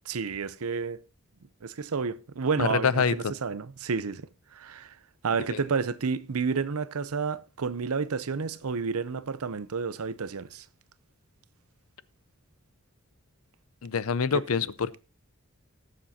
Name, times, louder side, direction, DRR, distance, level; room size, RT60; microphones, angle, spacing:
voice 1, 0.1-1.0 1.6-4.9 5.2-10.6 14.3-14.4, right 5 dB, 80° right, 0.6 m, -30 dB
voice 2, 2.6-3.3 5.5-5.6 13.8-15.0, left 6 dB, 75° left, 0.6 m, -26 dB
19.0 x 7.3 x 2.8 m
head